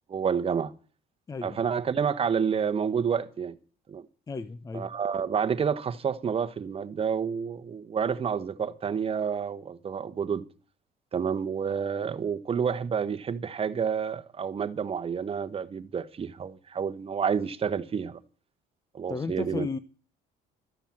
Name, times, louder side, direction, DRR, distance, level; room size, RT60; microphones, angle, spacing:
voice 1, 0.1-0.7 1.4-3.5 3.9-4.1 4.7-10.4 11.1-18.2 18.9-19.7, right 7 dB, 35° right, 1.1 m, -29 dB
voice 2, 1.3-1.6 4.3-4.9 19.1-19.8, left 4 dB, 20° left, 0.6 m, -34 dB
13.5 x 10.0 x 7.5 m
cardioid pair, 110°, 17 cm